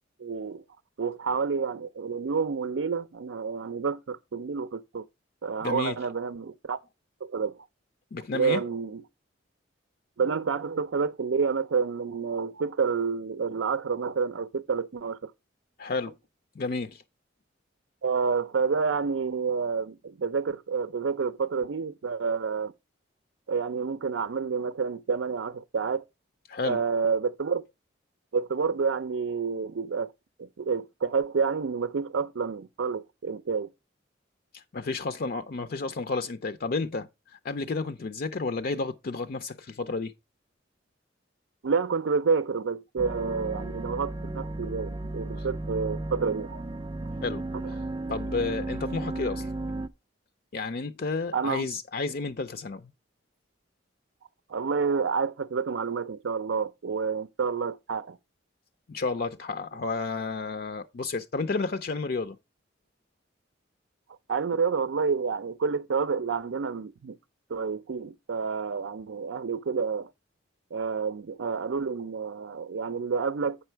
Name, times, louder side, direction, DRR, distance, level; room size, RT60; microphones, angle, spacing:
voice 1, 0.2-0.6 1.0-5.0 5.4-6.8 7.2-7.5 8.3-9.0 10.2-15.3 18.0-22.7 23.5-26.0 26.6-27.6 28.3-30.1 30.4-33.7 41.6-46.6 51.3-51.6 54.5-58.2 64.3-67.2 67.5-70.1 70.7-73.6, right 5 dB, 80° right, 0.5 m, -29 dB
voice 2, 5.6-6.0 8.1-8.6 15.8-16.1 16.6-17.0 26.5-26.8 34.5-40.1 45.4-45.5 47.2-47.8 48.1-49.5 50.5-52.9 58.9-62.4, left 3 dB, 50° left, 0.5 m, -31 dB
sound 1, 43.0-49.9, right 2 dB, 25° right, 0.4 m, -34 dB
8.4 x 5.5 x 4.4 m
head